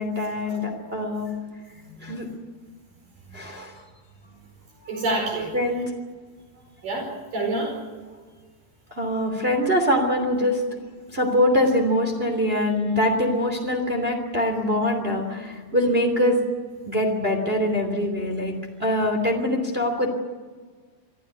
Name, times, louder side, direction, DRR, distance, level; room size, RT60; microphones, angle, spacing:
voice 1, 0.0-1.3 2.0-2.3 3.3-3.8 5.5-5.8 8.9-10.6 11.1-16.4 16.9-20.1, left 1 dB, 20° right, 3 dB, 2.9 m, -23 dB
voice 2, 4.9-5.5 6.8-7.8, right 2 dB, 75° right, 1 dB, 6.4 m, -28 dB
26.0 x 15.0 x 9.4 m, 1.5 s
omnidirectional pair, 3.9 m